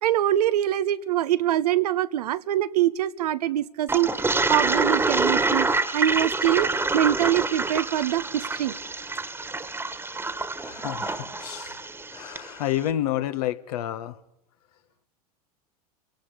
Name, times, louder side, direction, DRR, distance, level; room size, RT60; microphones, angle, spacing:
voice 1, 0.0-4.1 4.5-5.7 5.9-8.7, right 12 dB, 80° right, 14 dB, 1.0 m, -24 dB
Toilet flush, 3.9-12.5, right 3 dB, 10° right, 1.8 m, -26 dB
voice 2, 10.6-11.8 12.1-14.2, left 12 dB, 75° left, 10 dB, 1.7 m, -29 dB
29.0 x 18.0 x 5.2 m, 0.77 s
hypercardioid pair, 100°, 20 cm